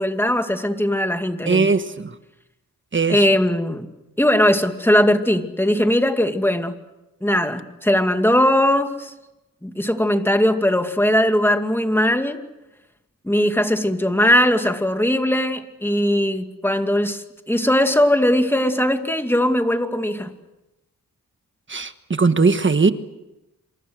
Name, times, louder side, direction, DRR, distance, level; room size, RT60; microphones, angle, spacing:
voice 1, 0.0-1.7 3.1-3.9 4.2-6.7 7.2-9.1 9.6-12.4 13.2-20.3, left 1 dB, 5° left, 6 dB, 2.4 m, -19 dB
voice 2, 1.5-2.1 2.9-3.2 21.7-22.9, right 4 dB, 35° right, 10 dB, 1.4 m, -19 dB
27.5 x 27.0 x 6.5 m, 0.96 s
wide cardioid pair, 90°, 34 cm